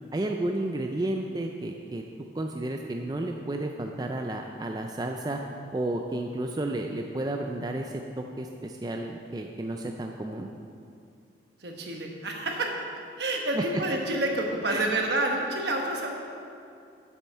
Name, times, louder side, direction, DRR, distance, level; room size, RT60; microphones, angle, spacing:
voice 1, 0.1-2.0 2.3-5.4 5.7-10.5 13.6-13.7 14.7-14.9, right 1 dB, 20° right, 3 dB, 0.3 m, -32 dB
voice 2, 11.6-12.7 13.2-16.1, right 2 dB, 70° right, 1 dB, 1.2 m, -28 dB
7.9 x 7.3 x 5.6 m, 2.5 s
head